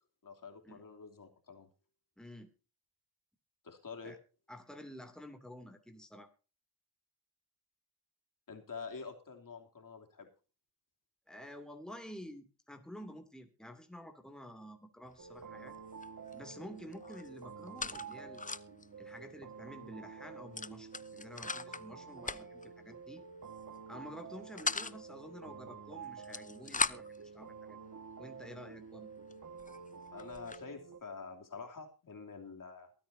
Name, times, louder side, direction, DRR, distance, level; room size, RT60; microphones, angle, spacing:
voice 1, 0.2-1.7 3.6-4.2 8.5-10.3 30.1-32.9, left 5 dB, 45° left, 3 dB, 3.2 m, -47 dB
voice 2, 2.2-2.5 4.0-4.2 4.5-6.3 11.3-15.8 16.3-18.4 19.0-23.2 23.9-27.1 27.3-27.8 28.2-29.1, equal, ahead, 5 dB, 2.8 m, -50 dB
sound 1, 15.1-15.4 15.7-16.5 16.8-18.9 19.2-19.3 19.6-19.8 20.5-21.9 22.2-22.7 23.5-23.8 24.2-25.0 26.0-27.2 28.0-28.1 28.7-28.8 29.3-29.4 29.6-30.6, left 4 dB, 20° left, 0.8 m, -39 dB
sound 2, 15.2-31.0, right 5 dB, 40° right, 1.8 m, -49 dB
23.0 x 9.3 x 2.8 m, 0.34 s
supercardioid pair, 55°, 44 cm